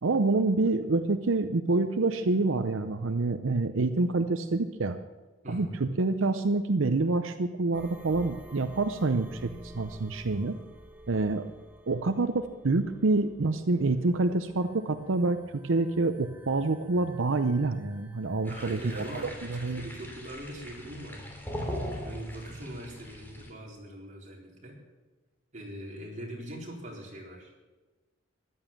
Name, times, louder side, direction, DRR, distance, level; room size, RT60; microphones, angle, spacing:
voice 1, 0.0-5.0 5.5-10.6 11.1-11.5 11.9-19.1 19.5-19.9, right 3 dB, 90° right, 9 dB, 0.7 m, -27 dB
voice 2, 5.4-5.7 18.4-21.3 21.9-24.8 25.5-27.5, right 1 dB, 40° right, -2 dB, 4.0 m, -42 dB
sound 1, 7.7-19.3, right 1 dB, 10° right, 1.1 m, -51 dB
sound 2, 18.4-23.5, equal, 10° left, 2.9 m, -40 dB
14.0 x 11.0 x 7.3 m, 1.2 s
head